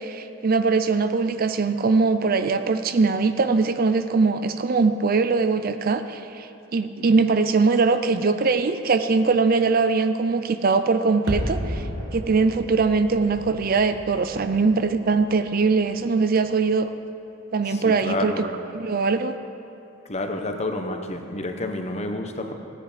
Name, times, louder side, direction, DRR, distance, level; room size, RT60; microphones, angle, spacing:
voice 1, 0.0-6.5 6.7-11.8 12.1-16.9 17.5-19.4, right 4 dB, 50° right, 10 dB, 0.5 m, -21 dB
sound 1, 11.3-16.2 16.5-16.6, equal, 65° right, 1.3 m, -34 dB
voice 2, 17.7-18.5 20.1-22.5, left 2 dB, 35° left, 5 dB, 0.9 m, -29 dB
16.0 x 10.0 x 5.0 m, 2.7 s
head